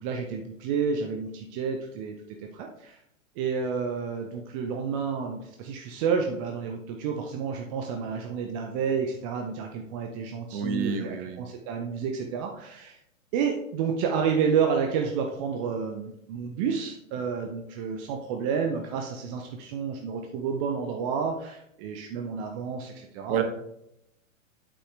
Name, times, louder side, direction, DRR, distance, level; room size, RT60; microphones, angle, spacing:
voice 1, 0.0-2.2 2.4-3.0 3.4-13.0 13.3-23.4, right 6 dB, 25° right, 3 dB, 0.5 m, -30 dB
voice 2, 10.5-11.4 23.3-23.4, right 6 dB, 45° right, 6 dB, 1.2 m, -28 dB
8.4 x 5.5 x 3.2 m, 0.78 s
figure-of-eight pair, 110°, 40 cm